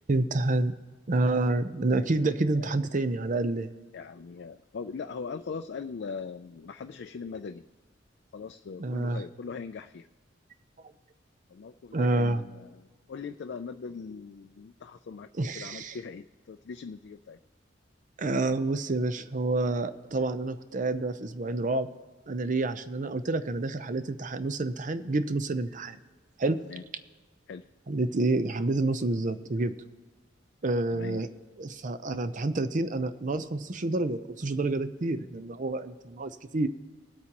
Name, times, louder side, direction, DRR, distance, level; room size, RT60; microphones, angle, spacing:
voice 1, 0.1-0.7 1.1-3.7 8.8-9.2 11.9-12.4 15.4-16.0 18.2-21.9 22.3-26.0 26.4-26.6 27.9-29.7 30.6-31.3 31.6-36.7, right 2 dB, 45° right, 12 dB, 0.6 m, -28 dB
voice 2, 2.4-2.7 3.9-7.7 8.3-10.1 11.5-17.4 26.6-26.8 27.5-27.6 30.9-31.2, left 5 dB, 60° left, 8 dB, 0.4 m, -40 dB
21.0 x 8.3 x 2.9 m, 1.3 s
head